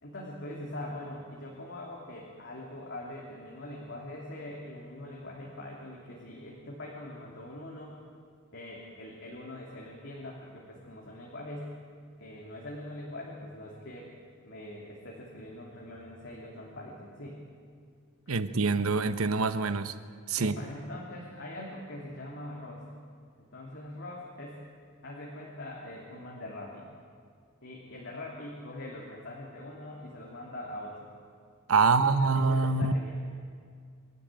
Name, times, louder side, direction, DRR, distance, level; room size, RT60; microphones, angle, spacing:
voice 1, 0.0-8.0 8.5-11.8 12.2-14.1 14.4-17.4 18.3-18.4 20.4-22.8 23.4-24.7 25.0-26.9 27.6-31.1 31.8-33.1, left 1 dB, 55° left, -3 dB, 2.9 m, -42 dB
voice 2, 18.3-19.9 20.3-20.5 31.7-32.9, right 4 dB, 80° right, 12 dB, 1.0 m, -25 dB
25.0 x 12.5 x 9.0 m, 2.1 s
head